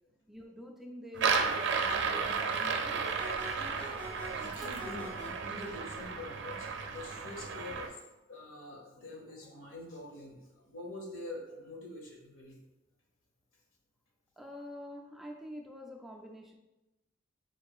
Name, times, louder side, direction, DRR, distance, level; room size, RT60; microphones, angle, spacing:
voice 1, 0.3-3.2 14.4-16.5, equal, ahead, 0 dB, 0.3 m, -46 dB
sound 1, 1.1-7.9, right 5 dB, 60° right, 0.5 m, -33 dB
sound 2, 3.2-5.3, right 1 dB, 15° left, 1.5 m, -45 dB
voice 2, 4.3-8.0 8.3-12.6, left 2 dB, 75° left, 0 dB, 1.1 m, -45 dB
4.8 x 4.5 x 2.4 m, 0.97 s
head